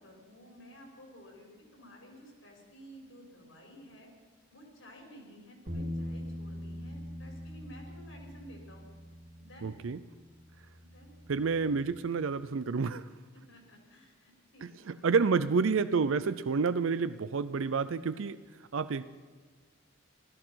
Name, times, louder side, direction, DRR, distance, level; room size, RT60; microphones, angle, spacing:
voice 1, 0.0-4.1 4.5-8.9 9.4-9.7 10.8-11.1 13.3-15.4, equal, 75° left, 0 dB, 5.0 m, -53 dB
sound 1, 5.7-11.9, equal, 55° right, 2.2 m, -43 dB
voice 2, 9.6-10.0 11.3-13.0 14.6-18.4 18.7-19.1, right 5 dB, 75° right, 13 dB, 0.5 m, -29 dB
16.5 x 14.0 x 5.7 m, 1.5 s
head